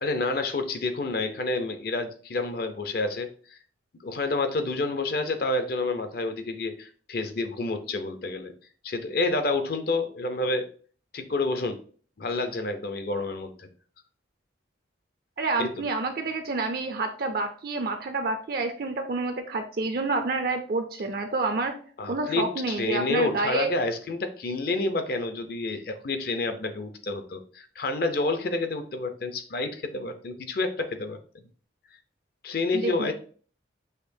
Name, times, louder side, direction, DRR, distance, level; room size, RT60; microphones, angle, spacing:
voice 1, 0.0-3.6 4.0-8.5 8.8-10.7 11.1-11.8 12.2-13.7 15.6-15.7 22.0-31.2 32.4-33.1, left 3 dB, 50° left, 7 dB, 0.5 m, -29 dB
voice 2, 15.4-21.7 22.1-23.7 32.7-33.1, right 3 dB, 50° right, 6 dB, 0.4 m, -28 dB
6.5 x 2.8 x 2.6 m, 0.44 s
head